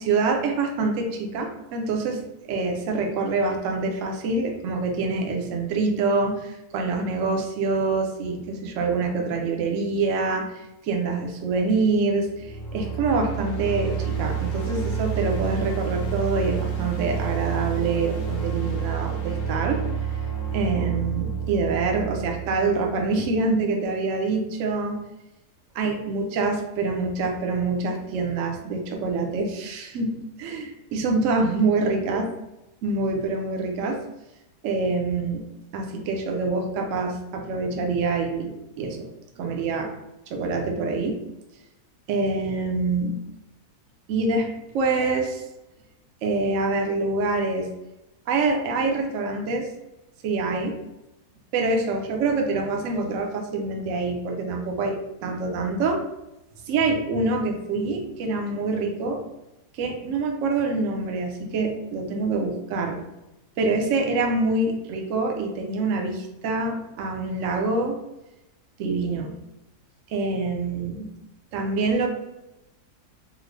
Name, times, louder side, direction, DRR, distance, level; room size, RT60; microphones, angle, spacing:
voice 1, 0.0-2.2 2.5-10.5 10.8-19.8 20.5-25.0 25.7-32.3 32.8-34.0 34.6-35.4 35.7-39.1 39.4-39.9 40.3-41.2 42.1-43.2 44.1-44.5 44.7-45.4 46.2-47.7 48.3-49.7 50.2-50.8 51.5-56.0 56.7-59.2 59.7-63.0 63.6-68.0 68.8-69.3 70.1-71.1 71.5-72.1, right 3 dB, 65° right, 2 dB, 0.8 m, -25 dB
sound 1, 12.3-23.3, right 7 dB, 85° left, 1.2 m, -29 dB
3.6 x 2.1 x 3.2 m, 0.93 s
omnidirectional pair, 1.7 m